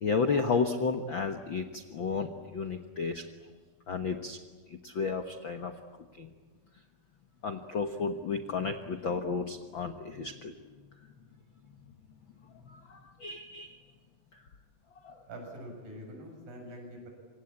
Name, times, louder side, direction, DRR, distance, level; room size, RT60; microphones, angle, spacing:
voice 1, 0.0-3.2 3.9-4.4 4.7-5.8 6.2-6.3 7.4-10.5 12.6-13.8 14.3-14.4 15.0-15.2, left 5 dB, 65° left, 6 dB, 1.2 m, -32 dB
voice 2, 15.3-17.1, equal, 70° right, 1 dB, 9.3 m, -44 dB
27.0 x 25.5 x 8.7 m, 1.5 s
omnidirectional pair, 4.1 m